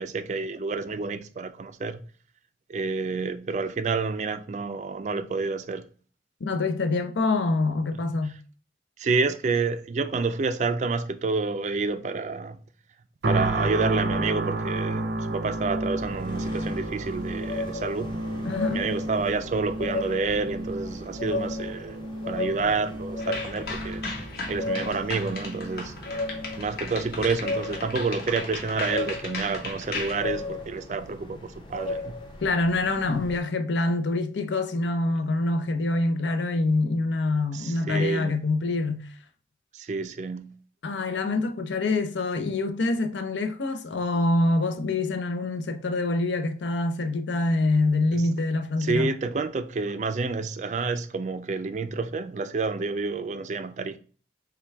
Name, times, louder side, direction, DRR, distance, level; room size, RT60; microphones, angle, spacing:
voice 1, 0.0-2.0 2.7-5.8 9.0-12.6 13.3-18.1 18.7-24.0 24.5-26.0 26.6-32.1 37.5-38.4 39.7-40.5 48.1-48.2 48.8-54.0, right 4 dB, 40° right, 0.3 m, -29 dB
voice 2, 6.4-8.4 18.4-18.9 32.4-39.1 40.8-49.1, left 2 dB, 90° left, 0.6 m, -25 dB
sound 1, 13.2-28.2 28.7-28.9, right 2 dB, 80° right, 0.7 m, -32 dB
sound 2, 16.0-33.4, left 2 dB, 25° left, 0.6 m, -36 dB
sound 3, 23.2-30.1, left 3 dB, 60° left, 1.2 m, -36 dB
5.8 x 2.3 x 3.3 m
head